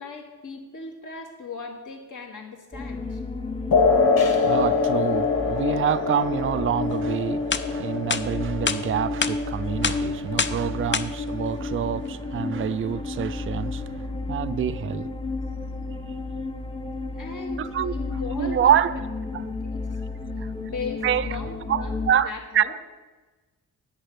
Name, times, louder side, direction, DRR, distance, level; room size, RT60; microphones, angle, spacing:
voice 1, 0.0-3.2 17.1-19.9 20.6-22.7, left 4 dB, 55° left, 1 dB, 2.4 m, -38 dB
sound 1, 2.7-22.1, left 3 dB, 15° left, 0.9 m, -32 dB
sound 2, 3.7-10.7, left 4 dB, 85° left, 1.6 m, -25 dB
voice 2, 3.9-15.1 15.6-16.2 17.6-19.0 19.3-19.5 20.4-20.5 21.0-21.4 21.7-22.6, right 9 dB, 35° right, 13 dB, 0.4 m, -27 dB
sound 3, 7.0-7.1 7.5-7.6 8.1-8.2 8.7-8.8 9.2-9.3 9.8-10.0 10.4-10.6 10.9-11.0, left 5 dB, 30° left, 0.6 m, -24 dB
10.0 x 8.1 x 5.7 m, 1.2 s
cardioid pair, 80°, 36 cm